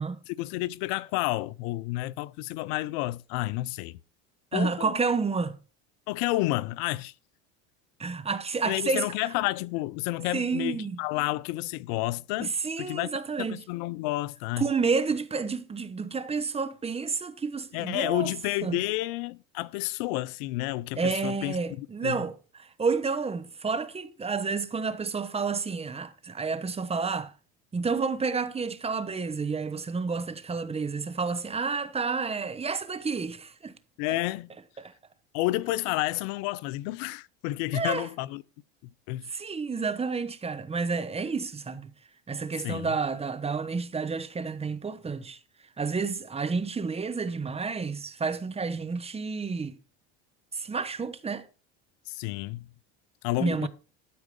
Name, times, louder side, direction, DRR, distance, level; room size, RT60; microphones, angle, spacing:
voice 1, 0.3-4.0 4.5-4.9 6.1-7.1 8.7-12.5 12.8-13.1 13.4-14.7 17.7-22.2 34.0-34.5 35.3-38.4 39.1-39.3 42.6-42.9 52.1-52.7 53.2-53.7, left 18 dB, 65° left, 0.5 m, -30 dB
voice 2, 4.5-5.6 8.0-9.1 10.3-11.0 12.4-13.6 14.6-18.3 18.6-18.8 21.0-27.3 27.7-33.7 34.8-34.9 37.7-38.1 39.3-41.9 42.3-45.4 45.8-49.8 50.5-51.5 53.4-53.7, right 4 dB, 15° right, 1.0 m, -30 dB
12.0 x 4.8 x 5.2 m
supercardioid pair, 95°, 34 cm